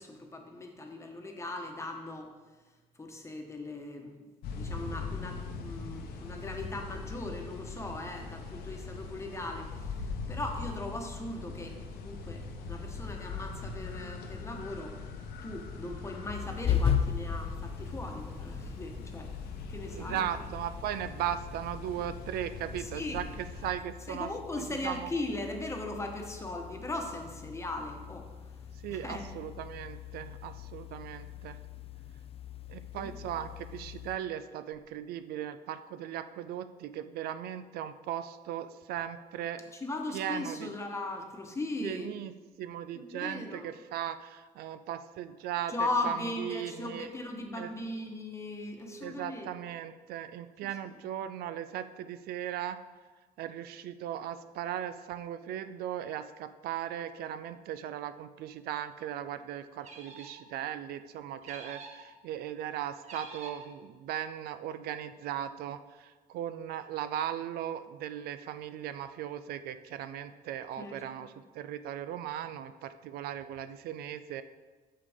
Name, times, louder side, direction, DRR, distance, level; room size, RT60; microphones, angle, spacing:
voice 1, 0.0-2.3 3.0-15.0 15.4-19.3 19.7-20.3 22.8-23.2 24.1-28.3 28.9-29.2 33.0-33.2 39.7-42.1 42.9-43.7 45.7-49.5 70.8-71.3, left 2 dB, 15° left, 2 dB, 1.2 m, -38 dB
sound 1, 4.4-23.7, left 4 dB, 80° left, 1.0 m, -41 dB
sound 2, 16.3-34.2, left 8 dB, 40° left, 0.4 m, -38 dB
voice 2, 19.9-24.3 24.6-25.1 28.8-31.6 32.7-39.6 40.1-40.7 41.8-42.3 42.6-45.7 46.0-47.1 47.6-47.7 49.0-52.8 53.4-74.4, right 10 dB, 75° right, 11 dB, 0.4 m, -38 dB
sound 3, 59.8-60.5 61.4-62.1 63.0-63.7, right 3 dB, 45° right, 1.3 m, -47 dB
8.6 x 6.7 x 3.6 m, 1.3 s
cardioid pair, 110°, 16 cm